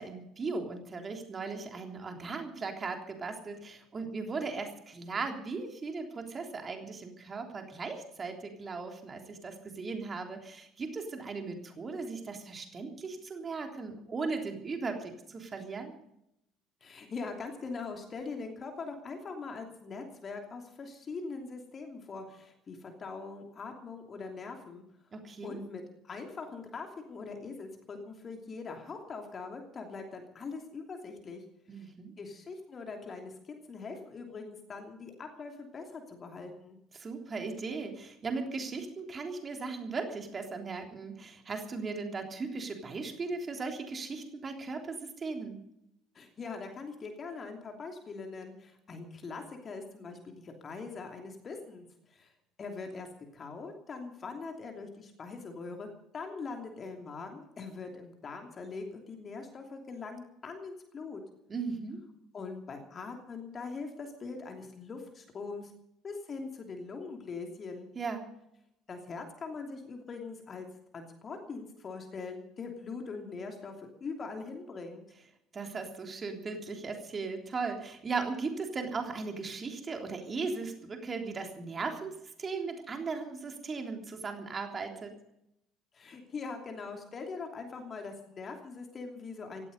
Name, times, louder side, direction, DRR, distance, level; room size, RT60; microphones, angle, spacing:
voice 1, 0.0-15.9 25.1-25.6 31.7-32.1 36.9-45.6 61.5-62.0 67.9-68.2 75.5-85.1, right 4 dB, 30° right, 4 dB, 3.4 m, -37 dB
voice 2, 16.8-24.8 25.4-31.4 31.8-31.9 32.2-36.8 46.1-52.3 52.6-53.1 53.3-61.2 62.3-65.7 66.0-67.9 68.9-70.7 70.9-75.0 85.9-89.7, left 4 dB, 30° left, 3 dB, 2.9 m, -42 dB
17.5 x 15.0 x 5.4 m, 0.81 s
figure-of-eight pair, 60°, 0 cm